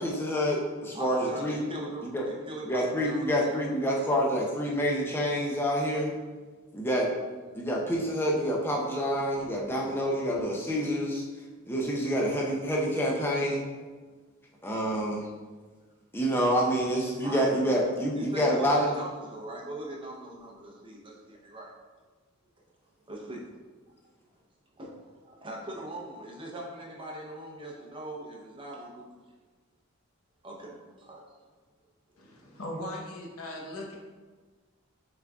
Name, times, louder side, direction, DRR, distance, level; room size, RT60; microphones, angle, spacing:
voice 1, 0.0-1.6 2.0-2.3 2.7-6.1 6.7-7.1 7.5-11.2 11.7-13.7 14.6-15.3 16.1-18.9, equal, 10° left, -2 dB, 0.6 m, -27 dB
voice 2, 0.9-3.5 17.2-17.5 18.1-21.7 23.1-23.4 24.8-29.0 30.4-31.2, right 1 dB, 25° right, -2 dB, 0.7 m, -41 dB
voice 3, 32.2-34.0, left 1 dB, 75° left, -1 dB, 0.9 m, -39 dB
6.1 x 3.7 x 2.3 m, 1.4 s
head